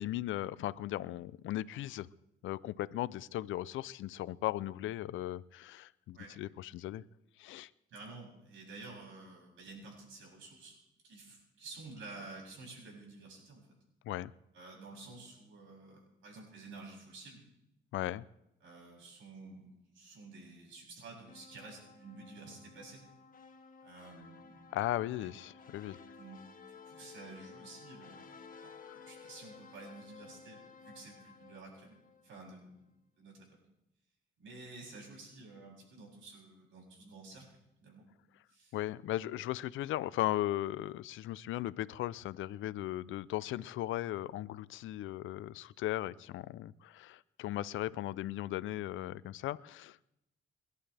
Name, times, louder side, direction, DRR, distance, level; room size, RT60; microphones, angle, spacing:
voice 1, 0.0-2.1 2.4-7.0 7.4-7.7 14.0-14.3 17.9-18.2 24.7-26.0 28.9-29.0 38.7-50.1, left 14 dB, 80° left, 19 dB, 0.5 m, -37 dB
voice 2, 7.9-10.8 11.0-13.7 14.5-17.4 18.6-23.0 23.8-24.7 25.2-25.3 26.0-32.0 32.2-33.5 34.4-37.5 37.8-38.0 38.5-38.8, right 3 dB, 75° right, -1 dB, 7.5 m, -51 dB
sound 1, 21.3-32.5, left 5 dB, 45° left, 1.6 m, -55 dB
29.5 x 11.5 x 3.4 m, 0.85 s
cardioid pair, 90°, 20 cm